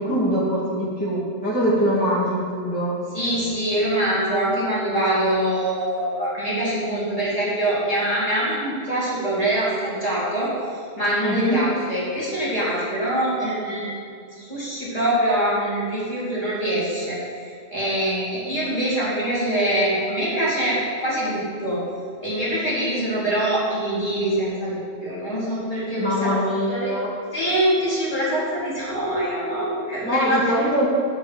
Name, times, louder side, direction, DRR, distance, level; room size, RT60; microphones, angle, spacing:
voice 1, 0.0-2.9 11.2-11.6 26.0-27.1 30.0-30.9, equal, 5° left, -10 dB, 2.1 m, -23 dB
voice 2, 3.1-10.5 11.0-17.2 17.7-21.8 22.2-26.4 26.7-27.0 27.3-30.7, right 1 dB, 30° left, -10 dB, 2.5 m, -24 dB
10.5 x 7.4 x 3.1 m, 2.3 s
omnidirectional pair, 1.3 m